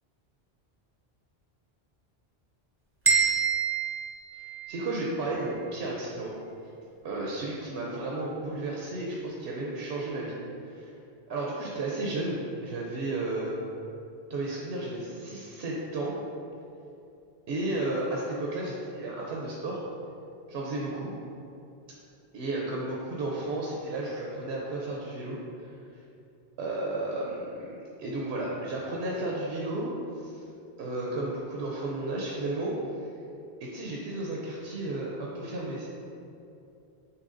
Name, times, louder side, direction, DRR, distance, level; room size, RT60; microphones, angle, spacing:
sound 1, 3.0-5.1, right 6 dB, 15° right, 0.5 m, -27 dB
voice 1, 4.7-6.3 7.0-10.4 10.7-10.9 11.3-13.5 14.3-16.1 17.5-19.8 20.5-21.1 22.3-25.7 26.6-29.9 30.2-30.5 30.8-32.7 33.7-36.0, right 2 dB, 75° right, -3 dB, 0.8 m, -33 dB
6.6 x 3.0 x 2.5 m, 2.7 s
omnidirectional pair, 1.1 m